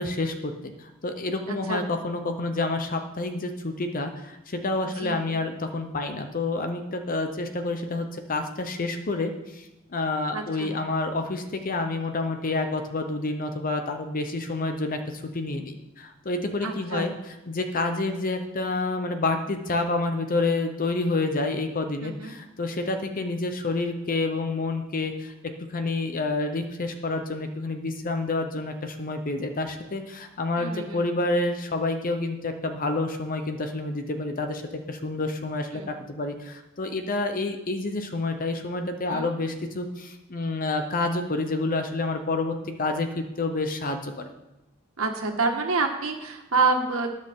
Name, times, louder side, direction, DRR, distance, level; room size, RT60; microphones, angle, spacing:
voice 1, 0.0-34.6 34.9-44.3, left 2 dB, 40° left, 6 dB, 0.8 m, -29 dB
voice 2, 1.5-1.8 5.0-5.2 10.3-10.7 16.6-17.1 22.0-22.3 30.6-31.0 35.7-35.9 39.1-39.3 45.0-47.1, right 4 dB, 90° right, 3 dB, 1.7 m, -27 dB
19.0 x 6.5 x 3.7 m, 0.99 s
head